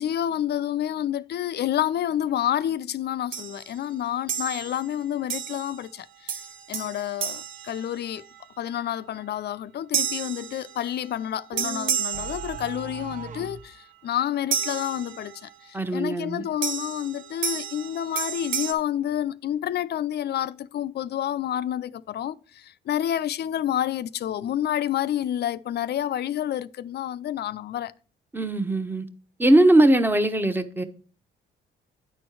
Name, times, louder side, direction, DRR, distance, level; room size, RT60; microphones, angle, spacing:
voice 1, 0.0-6.4 6.7-8.2 8.6-27.9, left 11 dB, 55° left, 0.5 m, -29 dB
sound 1, 3.3-3.7 4.3-4.9 5.3-5.9 6.3-8.4 9.9-11.1 11.6-13.0 14.5-15.5 16.6-18.7, right 7 dB, 80° right, 1.1 m, -31 dB
sound 2, 11.5-13.7, right 6 dB, 40° right, 0.6 m, -37 dB
voice 2, 15.7-16.4 28.3-29.1 29.4-30.8, right 1 dB, 10° right, 0.9 m, -20 dB
9.8 x 4.4 x 4.6 m
cardioid pair, 90°, 20 cm